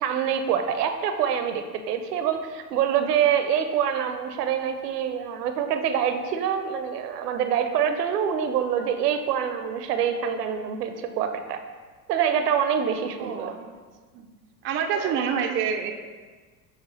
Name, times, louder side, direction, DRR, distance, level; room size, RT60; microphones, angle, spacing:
voice 1, 0.0-11.6 12.1-13.5 14.9-15.2, right 8 dB, 70° right, 7 dB, 0.7 m, -25 dB
voice 2, 13.2-13.8 14.1-14.3 14.6-15.9, right 7 dB, 25° right, 4 dB, 0.5 m, -27 dB
6.8 x 3.3 x 4.3 m, 1.4 s
figure-of-eight pair, 80°, 49 cm